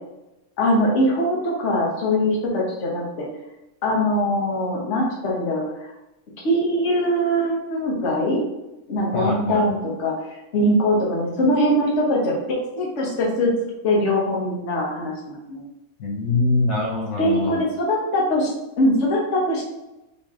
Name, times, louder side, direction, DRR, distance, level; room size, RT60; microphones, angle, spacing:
voice 1, 0.6-3.3 3.8-5.9 6.4-8.4 8.9-13.5 13.8-15.6 17.2-18.5 18.8-19.6, equal, 55° left, -3 dB, 1.4 m, -22 dB
voice 2, 9.1-9.7 16.0-17.6, left 2 dB, 70° left, -4 dB, 1.4 m, -23 dB
4.0 x 3.2 x 3.6 m, 0.95 s
omnidirectional pair, 1.5 m